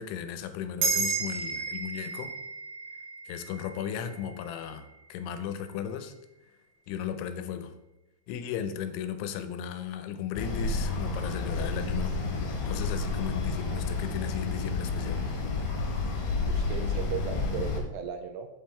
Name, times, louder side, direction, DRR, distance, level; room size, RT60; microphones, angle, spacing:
voice 1, 0.0-2.3 3.3-6.1 6.9-7.7 8.3-12.2 12.6-15.2, left 8 dB, 85° left, 9 dB, 3.1 m, -36 dB
sound 1, 0.8-5.5, right 5 dB, 65° right, 3.4 m, -33 dB
sound 2, 10.4-17.8, left 3 dB, 65° left, 3.2 m, -30 dB
voice 2, 16.5-18.5, right 7 dB, 85° right, 6 dB, 2.6 m, -37 dB
8.4 x 5.5 x 4.4 m, 1.0 s
omnidirectional pair, 5.2 m